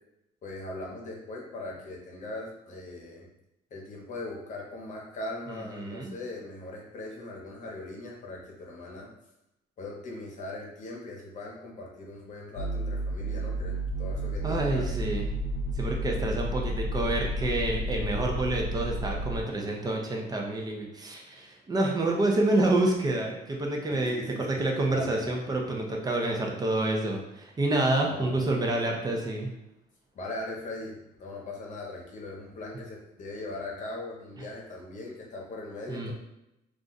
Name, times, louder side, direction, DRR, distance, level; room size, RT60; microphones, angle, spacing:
voice 1, 0.4-3.3 3.7-9.1 9.8-15.0 23.9-24.6 24.9-25.4 28.1-28.4 30.1-36.1, left 2 dB, 45° left, -1 dB, 0.9 m, -40 dB
voice 2, 5.5-6.1 14.4-15.3 15.7-29.5 35.9-36.1, right 2 dB, 25° right, 0 dB, 0.6 m, -28 dB
sound 1, 12.6-19.4, right 1 dB, 70° left, 0.5 m, -31 dB
2.5 x 2.3 x 3.9 m, 0.88 s
cardioid pair, 110°, 17 cm